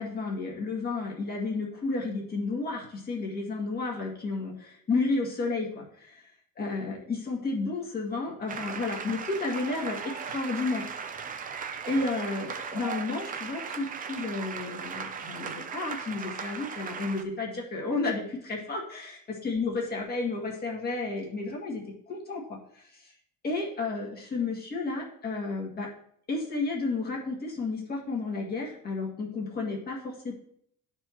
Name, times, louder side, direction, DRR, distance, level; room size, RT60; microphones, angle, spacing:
voice 1, 0.0-6.2 6.6-10.9 11.9-21.8 22.1-23.1 23.4-25.9 26.3-30.3, left 3 dB, 30° left, -2 dB, 2.0 m, -32 dB
sound 1, 8.5-17.2, right 6 dB, 25° right, 0.5 m, -37 dB
12.5 x 4.5 x 3.0 m, 0.68 s
cardioid pair, 160°, 31 cm